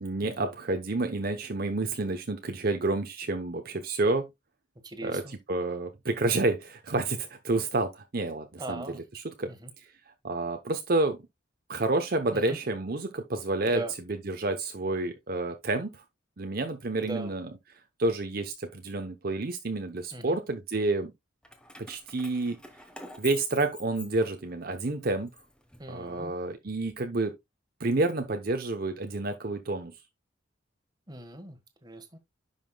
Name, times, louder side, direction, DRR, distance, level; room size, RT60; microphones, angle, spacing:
voice 1, 0.0-4.3 5.0-9.5 9.8-9.9 10.2-11.2 11.7-13.8 14.1-16.0 16.4-17.5 18.0-21.1 21.9-22.6 23.2-25.3 25.9-27.3 27.8-29.9, right 2 dB, 50° right, 0.8 m, -29 dB
voice 2, 4.8-5.4 8.6-9.0 9.5-9.7 12.3-12.6 13.7-13.9 17.0-17.3 20.1-20.4 25.8-26.3 31.1-32.2, right 2 dB, 20° right, 1.4 m, -39 dB
Keys jangling, 21.4-24.6 25.1-26.3, left 2 dB, 5° left, 1.1 m, -46 dB
10.5 x 5.8 x 2.3 m
head